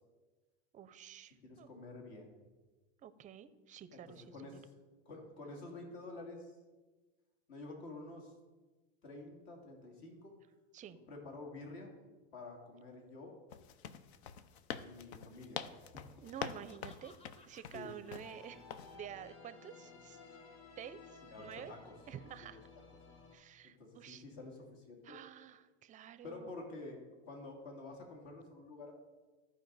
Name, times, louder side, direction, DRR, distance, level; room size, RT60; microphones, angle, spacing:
voice 1, 0.7-1.7 3.0-4.6 10.7-11.0 16.2-17.1 17.5-18.6 18.9-20.2 20.8-21.7 22.1-22.6 23.3-24.2 25.0-26.5, right 9 dB, 25° right, 14 dB, 0.4 m, -50 dB
voice 2, 1.4-2.3 3.9-4.0 4.3-4.6 5.1-6.5 7.5-8.3 9.0-10.4 11.1-11.9 12.3-13.4 14.8-15.8 17.7-17.9 21.3-21.9 22.4-22.6 23.6-25.2 26.2-28.9, left 2 dB, 70° left, 1 dB, 2.5 m, -49 dB
sound 1, 13.5-18.3 18.7-18.9, left 8 dB, 85° left, 0.6 m, -45 dB
Laughter, 16.1-19.3, left 2 dB, 20° left, 0.7 m, -64 dB
sound 2, 18.2-23.4, left 4 dB, 45° left, 1.4 m, -56 dB
14.0 x 4.9 x 4.0 m, 1.3 s
supercardioid pair, 120°, 31 cm